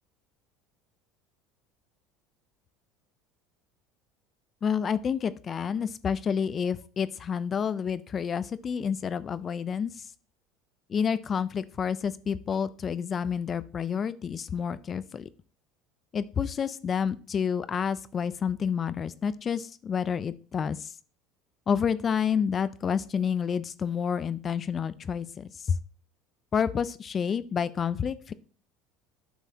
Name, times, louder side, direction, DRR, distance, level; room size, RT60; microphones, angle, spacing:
voice 1, 4.6-10.0 10.9-15.3 16.1-20.9 21.7-25.8 26.5-28.3, left 7 dB, 35° left, 15 dB, 0.4 m, -29 dB
8.2 x 6.1 x 2.8 m, 0.41 s
supercardioid pair, 90°, 0 cm